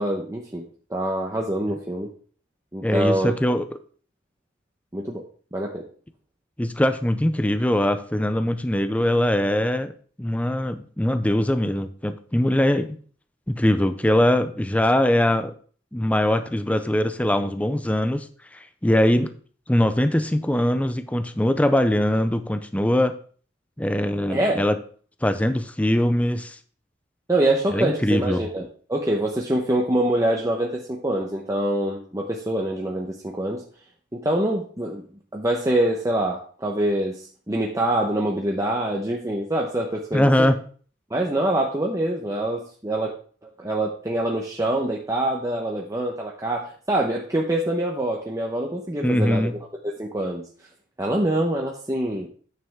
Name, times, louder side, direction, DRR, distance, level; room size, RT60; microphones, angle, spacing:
voice 1, 0.0-2.1 2.7-3.3 4.9-5.2 5.5-5.8 24.3-24.6 27.3-33.6 34.1-35.0 35.3-40.5 41.1-43.1 43.6-49.5 50.0-50.4 51.0-52.3, right 1 dB, 20° right, -1 dB, 0.9 m, -25 dB
voice 2, 2.8-3.6 6.6-9.9 10.2-13.0 13.5-15.5 15.9-18.3 18.5-19.3 19.7-23.2 23.8-24.7 25.2-26.6 27.7-28.5 40.1-40.6 49.0-49.6, left 1 dB, 10° left, 10 dB, 0.5 m, -22 dB
9.5 x 6.8 x 3.5 m, 0.43 s
head